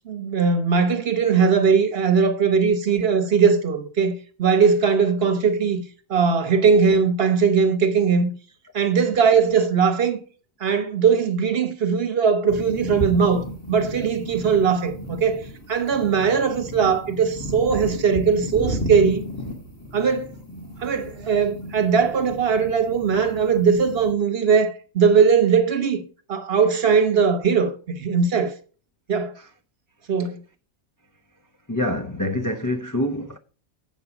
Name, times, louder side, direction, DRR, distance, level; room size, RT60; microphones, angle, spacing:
voice 1, 0.1-5.8 6.1-8.3 8.7-10.2 10.6-19.2 19.9-20.3 20.8-26.0 26.3-28.5 29.1-29.3 30.1-30.4, right 6 dB, 50° right, 1.1 m, -20 dB
sound 1, 12.5-24.1, equal, 15° left, 1.6 m, -34 dB
voice 2, 31.7-33.4, left 1 dB, 30° left, 0.3 m, -25 dB
8.1 x 5.4 x 5.8 m
omnidirectional pair, 1.4 m